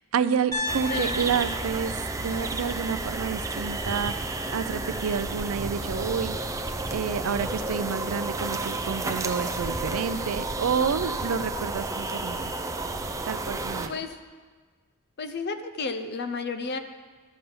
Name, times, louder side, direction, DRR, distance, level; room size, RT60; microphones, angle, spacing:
voice 1, 0.1-6.4 6.9-12.5 13.3-13.9, right 6 dB, 75° right, 13 dB, 0.4 m, -29 dB
Piano, 0.5-4.6, left 2 dB, 15° left, 2.2 m, -37 dB
sound 1, 0.7-13.9, right 2 dB, 15° right, 0.5 m, -31 dB
voice 2, 0.9-1.2 13.9-14.1 15.2-16.8, left 4 dB, 50° left, 9 dB, 0.6 m, -32 dB
12.5 x 5.4 x 7.0 m, 1.5 s
head